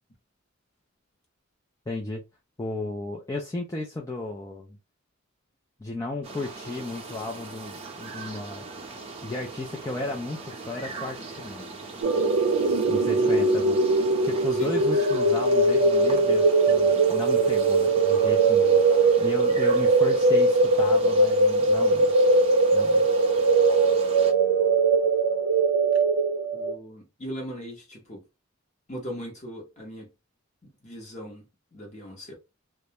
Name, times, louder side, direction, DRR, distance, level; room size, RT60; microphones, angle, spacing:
voice 1, 1.9-2.2 2.6-4.8 5.8-8.7 9.2-11.7 12.9-13.8 14.2-18.8 19.2-22.1 22.7-23.1, left 2 dB, 15° left, 0.3 m, -34 dB
sound 1, 6.2-24.3, right 3 dB, 30° right, 0.6 m, -40 dB
sound 2, 12.0-26.7, right 3 dB, 70° right, 0.5 m, -21 dB
voice 2, 14.5-14.8 26.5-28.2 28.9-30.1 30.8-31.4 31.7-32.3, equal, 35° left, 0.9 m, -39 dB
2.3 x 2.1 x 2.8 m
head